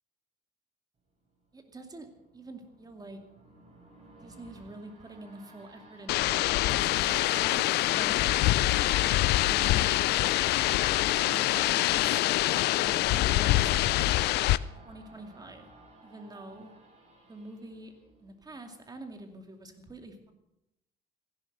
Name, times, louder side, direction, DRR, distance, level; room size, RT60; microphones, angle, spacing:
Discord Bell Metal Scream Reverse, 1.1-18.9 19.3-19.4, right 2 dB, 40° right, 5.3 m, -56 dB
voice 1, 1.5-2.1 2.3-3.2 4.2-8.2 8.9-10.2 11.1-12.2 12.5-14.0 14.8-15.6 16.0-16.7 17.2-17.9 18.2-20.3, right 2 dB, 20° right, 6 dB, 2.5 m, -46 dB
sound 1, 6.1-14.6, left 16 dB, 75° left, 0.5 m, -25 dB
15.5 x 11.5 x 6.7 m, 0.87 s
cardioid pair, 110°, 17 cm